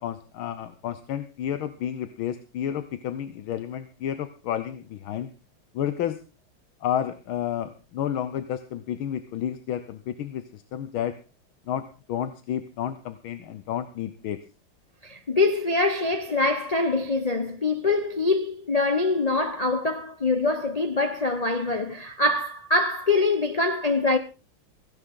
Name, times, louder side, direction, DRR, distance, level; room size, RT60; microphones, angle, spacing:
voice 1, 0.0-5.3 5.7-6.2 6.8-11.2 11.7-14.4, left 10 dB, 80° left, 1.7 m, -31 dB
voice 2, 15.0-24.2, left 3 dB, 55° left, 0.4 m, -24 dB
16.5 x 16.0 x 3.7 m
omnidirectional pair, 2.2 m